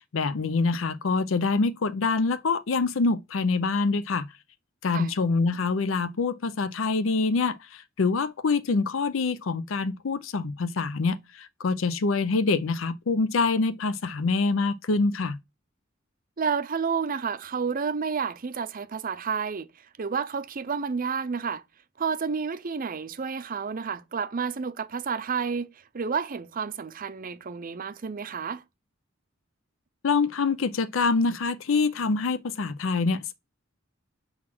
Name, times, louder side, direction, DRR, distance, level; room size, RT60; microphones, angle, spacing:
voice 1, 0.1-4.3 4.8-15.4 30.0-33.3, left 4 dB, 70° left, 0.5 m, -25 dB
voice 2, 16.4-19.7 20.0-21.6 22.0-28.6, right 6 dB, 45° right, 0.6 m, -30 dB
7.3 x 4.0 x 6.0 m
head